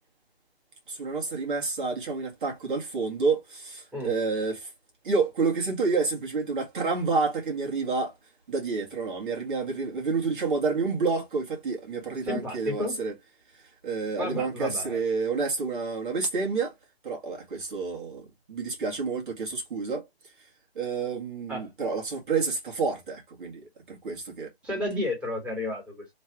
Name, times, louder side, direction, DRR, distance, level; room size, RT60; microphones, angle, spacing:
voice 1, 0.9-4.7 5.0-8.1 8.5-13.1 13.8-16.7 17.0-20.1 20.8-24.5, right 4 dB, 55° right, 1.9 m, -29 dB
voice 2, 12.2-13.0 14.2-15.0 21.5-21.7 24.6-26.1, left 1 dB, 5° right, 2.1 m, -32 dB
3.3 x 3.2 x 4.7 m
hypercardioid pair, 150°, 31 cm